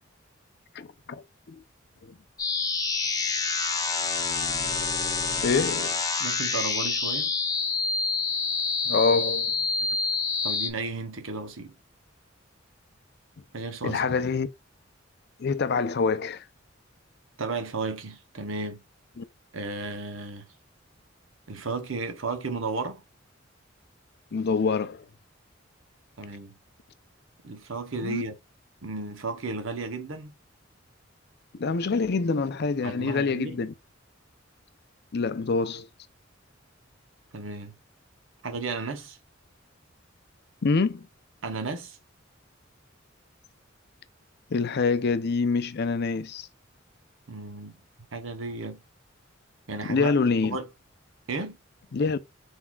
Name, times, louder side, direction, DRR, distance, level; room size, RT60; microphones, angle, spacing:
voice 1, 0.7-1.6 2.1-2.2 5.4-6.0 8.9-9.5 13.8-14.5 15.4-16.4 19.2-19.3 24.3-25.1 28.0-28.2 31.5-33.7 35.1-35.9 40.6-41.1 44.5-46.5 49.9-50.6 51.9-52.2, left 4 dB, 55° left, 0.5 m, -26 dB
sound 1, 2.4-10.7, left 4 dB, 20° left, 0.6 m, -27 dB
voice 2, 6.2-7.3 10.4-11.7 13.5-14.0 17.4-18.8 19.5-20.4 21.5-23.0 26.2-26.5 27.4-28.3 28.8-30.3 32.8-33.6 37.3-37.7 38.4-39.2 41.4-42.0 47.3-47.8 48.1-48.8 49.7-50.2 50.5-50.7 51.3-51.6, right 3 dB, 80° right, 0.9 m, -33 dB
4.4 x 4.1 x 2.3 m
head